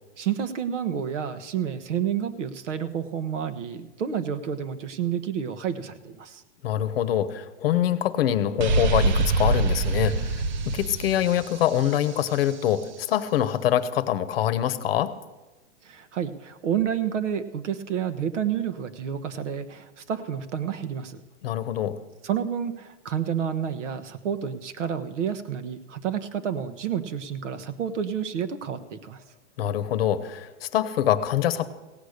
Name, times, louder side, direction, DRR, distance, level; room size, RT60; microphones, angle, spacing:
voice 1, 0.2-6.4 15.8-21.2 22.2-29.2, right 8 dB, 75° right, 10 dB, 1.2 m, -29 dB
voice 2, 6.6-15.1 21.4-22.0 29.6-31.7, left 11 dB, 50° left, 14 dB, 0.9 m, -25 dB
sound 1, 8.6-12.4, right 3 dB, 40° right, 0.6 m, -25 dB
16.5 x 8.3 x 6.5 m, 1.1 s
hypercardioid pair, 165°, 37 cm